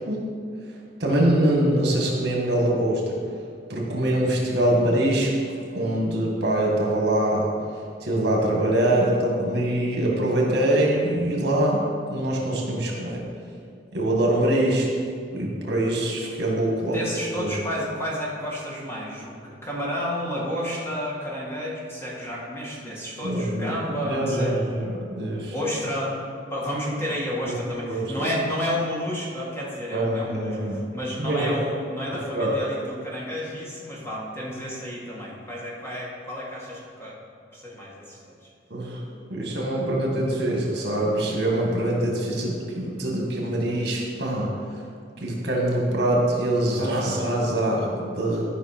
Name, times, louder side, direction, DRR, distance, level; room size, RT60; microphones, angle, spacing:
voice 1, 1.0-3.2 3.7-5.3 5.7-7.5 8.0-11.8 12.1-13.2 13.9-14.9 15.3-17.0 17.4-17.5 23.2-23.7 24.1-25.5 27.5-27.6 27.9-28.3 29.9-30.8 31.2-31.5 32.1-32.5 38.7-39.0 39.3-44.5 45.2-48.5, right 1 dB, 60° right, -2 dB, 1.8 m, -24 dB
voice 2, 16.8-24.5 25.5-26.2 26.5-37.1 37.5-38.3, equal, 15° left, -5 dB, 1.7 m, -31 dB
12.5 x 5.6 x 4.4 m, 2.2 s
head